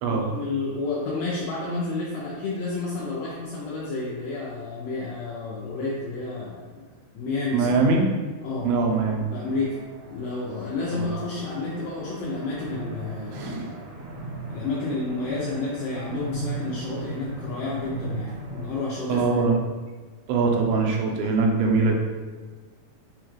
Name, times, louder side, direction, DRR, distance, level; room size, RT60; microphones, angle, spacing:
voice 1, 0.1-6.8 7.2-7.7 8.4-8.7 9.3-9.8 10.1-13.6 14.5-19.4, left 3 dB, 85° left, -6 dB, 2.0 m, -30 dB
voice 2, 7.5-8.1 8.6-9.3 10.9-11.1 13.3-13.7 19.1-19.6 20.3-21.9, right 4 dB, 80° right, 1 dB, 2.5 m, -22 dB
sound 1, 8.9-18.8, right 3 dB, 60° right, 2.4 m, -37 dB
6.9 x 2.3 x 3.0 m, 1.4 s
omnidirectional pair, 4.5 m